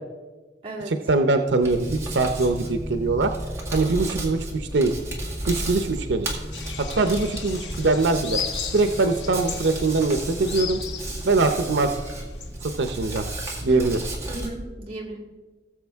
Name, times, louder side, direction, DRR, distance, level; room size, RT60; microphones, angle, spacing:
voice 1, 0.8-3.3 3.7-4.9 5.5-6.4 6.8-8.4 8.7-10.8 11.2-12.0 12.6-13.2 13.6-14.0, right 3 dB, 85° right, 7 dB, 0.7 m, -22 dB
Hands, 1.6-14.5, right 1 dB, 15° right, 1.7 m, -33 dB
sound 1, 6.5-12.5, left 7 dB, 85° left, 0.9 m, -36 dB
voice 2, 14.3-15.2, right 2 dB, 30° right, -4 dB, 2.8 m, -35 dB
18.5 x 7.1 x 3.5 m, 1.3 s
head